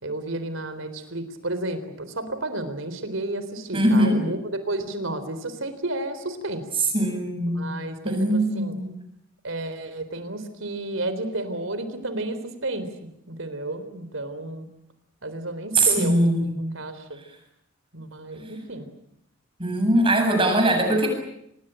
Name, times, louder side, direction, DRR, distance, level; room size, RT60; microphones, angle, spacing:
voice 1, 0.0-6.6 7.5-8.8 9.4-12.9 13.3-14.7 15.2-16.3 16.7-17.2 17.9-18.9, right 2 dB, 75° right, 11 dB, 3.8 m, -32 dB
voice 2, 3.7-4.2 6.9-7.7 8.0-8.9 15.7-16.6 19.6-21.1, right 1 dB, 25° right, 3 dB, 8.0 m, -21 dB
26.5 x 20.5 x 9.0 m, 0.76 s
head